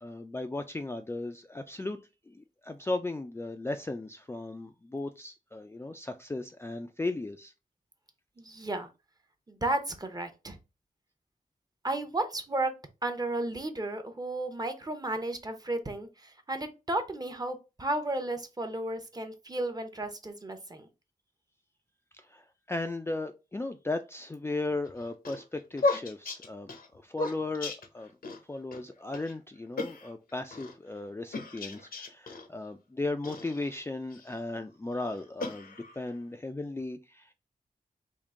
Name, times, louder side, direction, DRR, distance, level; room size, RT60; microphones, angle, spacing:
voice 1, 0.0-2.0 2.3-7.5 22.3-26.7 27.0-28.1 28.5-37.3, left 2 dB, 15° left, 0.3 m, -36 dB
voice 2, 8.4-8.9 9.5-10.6 11.8-12.7 13.0-20.9, right 2 dB, 25° right, 0.7 m, -33 dB
sound 1, 24.9-28.4 28.7-28.8 29.1-29.3 29.8-30.8 31.3-32.5 33.2-34.4 34.9-36.1, left 3 dB, 75° left, 0.8 m, -35 dB
3.6 x 2.5 x 3.6 m
wide cardioid pair, 95°, 15 cm